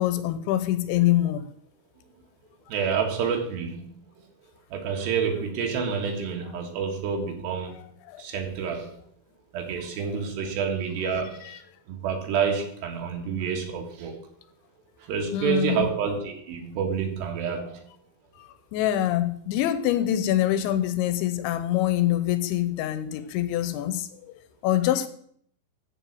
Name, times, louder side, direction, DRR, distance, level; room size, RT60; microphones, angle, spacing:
voice 1, 0.0-1.5 8.1-8.2 15.3-15.9 18.4-24.1 24.6-25.1, left 12 dB, 80° left, 12 dB, 3.0 m, -25 dB
voice 2, 2.7-3.9 4.2-4.3 4.7-7.8 8.2-8.9 9.5-11.6 11.9-14.2 15.0-17.8, right 6 dB, 70° right, 3 dB, 3.5 m, -28 dB
14.0 x 5.2 x 6.5 m, 0.64 s
omnidirectional pair, 5.4 m